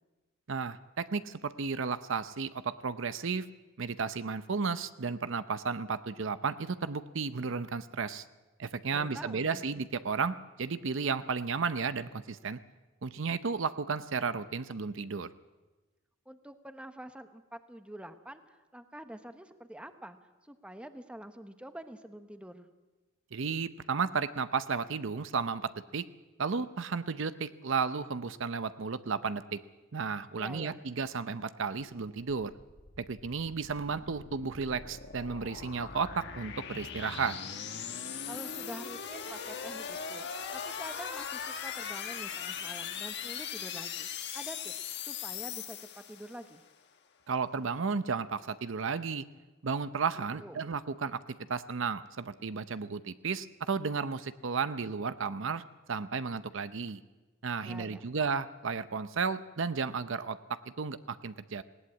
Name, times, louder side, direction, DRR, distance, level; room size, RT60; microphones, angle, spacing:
voice 1, 0.5-3.5 3.8-8.2 8.6-12.6 13.0-15.3 23.3-26.0 26.4-29.6 29.9-32.5 33.0-37.4 47.3-49.2 49.6-51.2 51.5-55.6 55.9-57.0 57.4-61.6, right 5 dB, 65° right, 13 dB, 0.7 m, -33 dB
voice 2, 8.9-9.6 16.3-20.2 20.4-22.7 30.4-30.8 38.3-40.2 40.5-44.1 44.3-44.7 45.0-46.6 50.2-50.6 57.6-58.1, right 1 dB, 5° right, 8 dB, 1.0 m, -46 dB
sound 1, 32.5-46.6, left 7 dB, 60° left, 1.7 m, -40 dB
19.5 x 17.5 x 8.6 m, 1.2 s
head